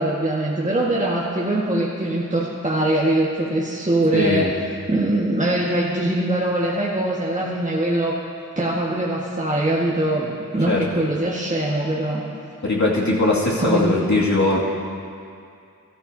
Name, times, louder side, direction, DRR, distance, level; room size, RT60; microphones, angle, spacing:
voice 1, 0.0-4.5 4.9-8.1 8.5-12.2 13.6-14.1, right 1 dB, 20° right, -6 dB, 1.6 m, -22 dB
voice 2, 4.1-4.5 10.7-10.8 12.6-14.6, left 2 dB, 60° left, -5 dB, 2.4 m, -20 dB
13.5 x 13.5 x 2.8 m, 2.4 s
cardioid pair, 45°, 33 cm